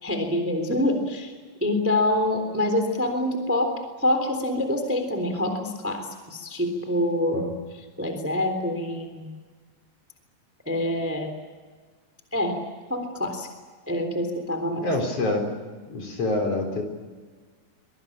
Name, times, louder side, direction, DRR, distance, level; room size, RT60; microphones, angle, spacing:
voice 1, 0.0-1.3 1.6-9.3 10.6-11.3 12.3-12.6 12.9-13.5 13.9-14.9, left 1 dB, 5° right, 6 dB, 2.9 m, -26 dB
voice 2, 14.8-15.6 15.9-16.8, left 2 dB, 40° left, 3 dB, 5.0 m, -26 dB
25.0 x 22.5 x 8.8 m, 1.4 s
omnidirectional pair, 4.1 m